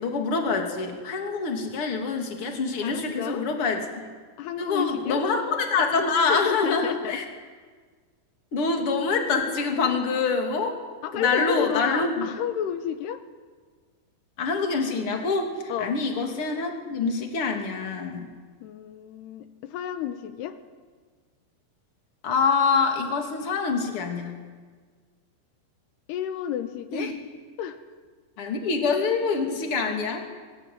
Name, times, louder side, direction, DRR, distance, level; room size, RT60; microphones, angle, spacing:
voice 1, 0.0-4.1 4.6-7.2 8.5-10.8 11.1-12.3 14.4-15.5 15.8-18.3 22.2-24.3 26.9-27.1 28.4-30.2, left 4 dB, 35° left, 3 dB, 2.8 m, -25 dB
voice 2, 2.8-3.5 4.4-5.2 6.3-7.2 11.0-13.2 15.7-16.0 18.6-20.5 26.1-27.1 27.6-27.8, left 9 dB, 70° left, 10 dB, 2.6 m, -31 dB
24.5 x 20.5 x 9.5 m, 1.5 s
omnidirectional pair, 6.0 m